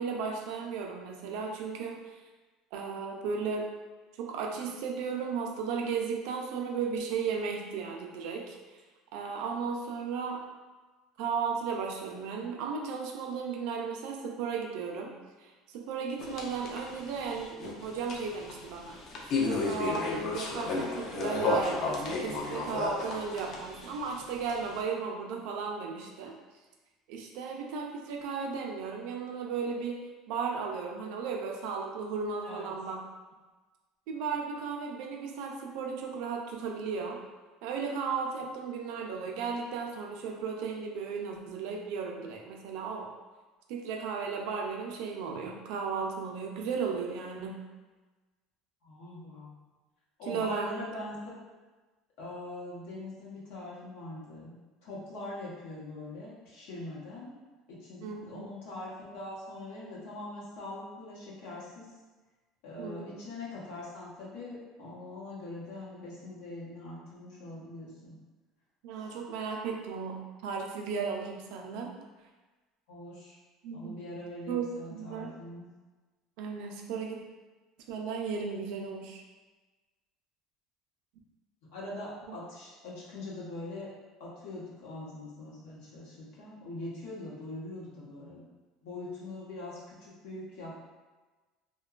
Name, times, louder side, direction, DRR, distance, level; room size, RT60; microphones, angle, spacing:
voice 1, 0.0-2.0 2.7-3.7 4.2-8.6 9.1-10.4 11.2-19.0 19.5-26.4 27.1-33.0 34.1-37.2 37.6-43.1 43.7-47.7 50.3-50.8 58.0-58.5 62.8-63.2 68.8-72.0 73.6-74.0 74.5-74.6 74.9-75.3 76.4-77.2 77.9-79.2 82.3-82.4, right 5 dB, 70° right, 1 dB, 0.4 m, -35 dB
sound 1, 16.2-24.8, left 3 dB, 45° left, 0.4 m, -33 dB
voice 2, 48.8-49.5 50.2-51.2 51.5-51.6 52.2-54.5 54.8-57.3 57.7-61.9 62.6-68.2 69.0-69.1 72.9-73.4 73.7-75.7 81.7-83.9 84.2-88.4 88.8-90.7, left 2 dB, 85° left, -6 dB, 0.9 m, -42 dB
2.8 x 2.2 x 2.4 m, 1.3 s
cardioid pair, 155°, 0 cm